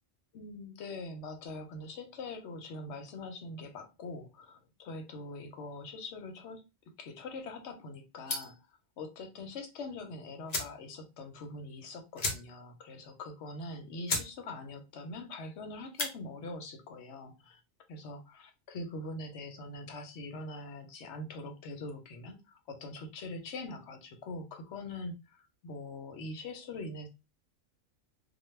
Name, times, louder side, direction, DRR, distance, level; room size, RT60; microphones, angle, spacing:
voice 1, 0.3-6.6 7.0-8.7 9.0-17.6 17.9-27.1, left 2 dB, 65° left, 5 dB, 0.9 m, -43 dB
sound 1, 8.3-8.7 10.0-10.1 10.5-10.8 11.2-11.3 11.5-11.7 12.1-12.7 13.1-13.2 13.7-13.8 14.1-14.3 14.7-15.0 15.8-16.1, left 2 dB, 40° left, 0.6 m, -35 dB
2.2 x 2.2 x 3.1 m, 0.27 s
omnidirectional pair, 1.3 m